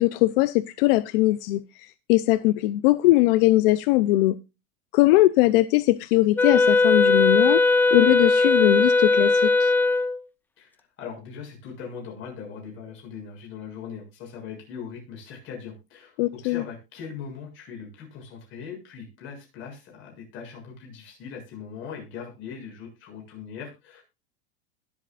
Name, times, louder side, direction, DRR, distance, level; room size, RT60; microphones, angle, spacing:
voice 1, 0.0-4.4 4.9-7.6 7.9-9.7 16.2-16.6, left 17 dB, 55° left, 14 dB, 0.6 m, -20 dB
Wind instrument woodwind instrument, 6.4-10.2, left 3 dB, 5° left, 0.5 m, -19 dB
voice 2, 10.6-24.0, left 6 dB, 40° left, 0 dB, 7.2 m, -40 dB
21.0 x 7.7 x 2.5 m, 0.27 s
supercardioid pair, 155°, 33 cm